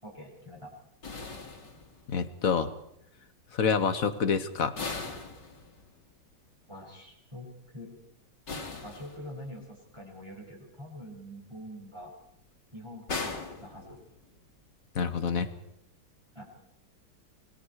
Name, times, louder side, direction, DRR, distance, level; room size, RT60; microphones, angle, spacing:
voice 1, 0.0-0.7 6.7-7.9 8.8-12.1 12.7-14.0 16.3-16.4, equal, 15° right, -3 dB, 6.5 m, -45 dB
sound 1, 1.0-2.3 4.8-6.1 8.5-9.6 13.1-14.4, left 3 dB, 65° left, 3.2 m, -39 dB
voice 2, 2.1-2.7 3.5-4.7 14.9-15.5, left 6 dB, 50° left, 11 dB, 1.5 m, -27 dB
26.5 x 21.5 x 4.8 m, 0.76 s
omnidirectional pair, 2.0 m